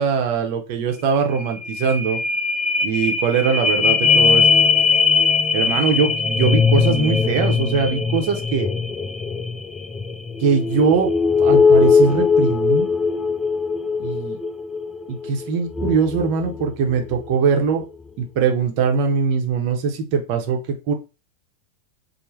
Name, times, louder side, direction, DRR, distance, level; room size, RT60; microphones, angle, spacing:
voice 1, 0.0-2.2 2.8-4.5 5.5-8.7 10.4-11.1 11.4-12.9 14.0-14.4 15.1-17.9 18.2-20.6 20.9-21.0, right 5 dB, 45° right, 3 dB, 0.7 m, -21 dB
sound 1, 1.0-1.1 1.4-17.3 17.8-17.9, left 5 dB, 10° left, 0.4 m, -20 dB
3.3 x 2.0 x 3.1 m, 0.29 s
figure-of-eight pair, 90°, 0 cm